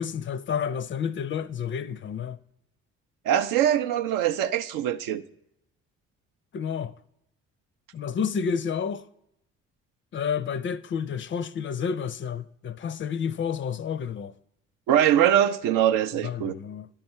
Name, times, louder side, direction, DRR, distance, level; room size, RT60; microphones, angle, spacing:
voice 1, 0.0-2.4 6.5-6.9 7.9-9.0 10.1-14.3 16.2-16.9, left 7 dB, 35° left, 0.4 m, -30 dB
voice 2, 3.3-5.2 14.9-16.5, right 10 dB, 70° right, 0.5 m, -22 dB
10.0 x 3.5 x 5.4 m
hypercardioid pair, 55°, 34 cm